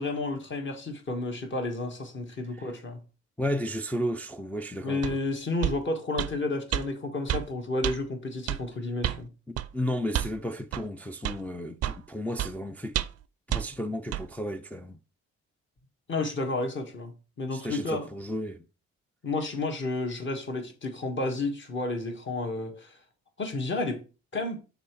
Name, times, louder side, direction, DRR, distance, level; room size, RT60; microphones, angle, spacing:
voice 1, 0.0-3.0 4.8-9.3 16.1-17.1 17.4-18.1 19.2-23.0 23.4-24.0 24.3-24.6, left 2 dB, 40° left, 1.6 m, -31 dB
voice 2, 3.4-5.2 9.5-13.0 13.5-15.0 17.5-18.7, equal, 5° left, 0.4 m, -33 dB
sound 1, 5.0-5.2 5.6-5.8 6.2-6.3 6.7-6.8 7.3-7.5 7.8-8.0 8.5-8.6 9.0-9.2 9.6-9.7 10.1-10.3 10.7-10.8 11.2-11.4 11.8-12.0 12.4-12.5 12.9-13.2 13.5-13.6 14.1-14.2, right 12 dB, 55° right, 0.5 m, -29 dB
6.0 x 3.5 x 4.6 m
cardioid pair, 90°, 30 cm